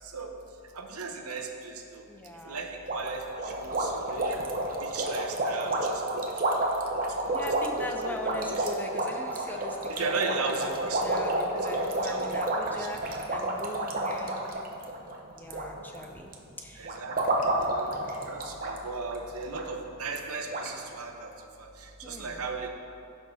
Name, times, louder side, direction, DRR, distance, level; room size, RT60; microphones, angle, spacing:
voice 1, 0.7-2.0 2.4-4.4 4.8-6.2 6.5-6.6 7.0-7.3 7.7-8.7 9.5-11.1 11.6-12.4 12.8-13.2 16.8-17.9 18.3-21.3 21.6-22.7, right 4 dB, 85° right, 3 dB, 0.9 m, -37 dB
voice 2, 2.1-2.6 7.3-10.7 11.0-14.4 15.3-16.3 16.6-16.9 22.0-22.4, left 1 dB, 10° left, 2 dB, 0.6 m, -40 dB
sound 1, 2.9-15.6 15.9-16.3 16.8-18.8 19.0-19.2 19.5-19.6 20.2-20.3 20.5-20.7, right 1 dB, 40° right, 0.8 m, -30 dB
15.0 x 6.2 x 2.8 m, 2.5 s
head